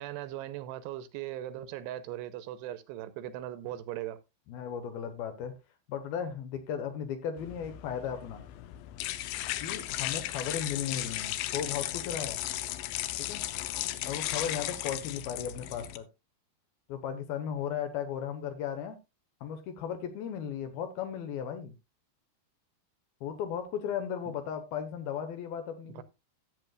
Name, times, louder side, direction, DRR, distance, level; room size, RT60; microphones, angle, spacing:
voice 1, 0.0-4.2 24.3-24.4 26.0-26.1, right 13 dB, 85° right, 2.8 m, -39 dB
voice 2, 4.5-5.5 5.9-8.4 9.6-12.4 13.2-13.4 14.0-16.0 16.9-19.0 19.4-21.7 23.2-26.0, left 8 dB, 70° left, 2.8 m, -36 dB
sound 1, 7.4-16.0, left 14 dB, 85° left, 2.1 m, -36 dB
13.5 x 8.3 x 2.4 m
omnidirectional pair, 4.9 m